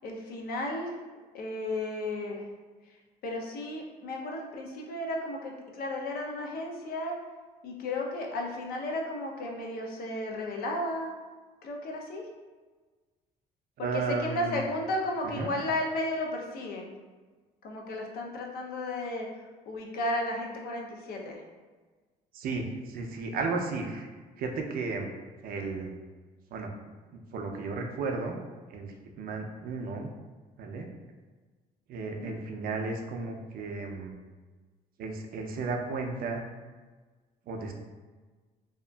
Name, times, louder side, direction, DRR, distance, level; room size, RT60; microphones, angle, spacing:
voice 1, 0.0-1.0 1.3-2.5 3.2-7.1 7.6-11.1 11.6-12.2 13.8-16.9 17.6-19.3 19.7-21.4 32.0-32.3, left 1 dB, 65° left, 0 dB, 0.5 m, -34 dB
voice 2, 13.8-14.6 15.3-15.5 22.3-24.1 24.4-25.1 25.4-26.0 26.5-26.7 27.1-28.4 28.7-30.1 30.6-30.9 31.9-34.1 35.0-36.5 37.5-37.7, right 3 dB, 60° right, 2 dB, 0.4 m, -34 dB
2.8 x 2.4 x 2.2 m, 1.4 s
cardioid pair, 110°, 17 cm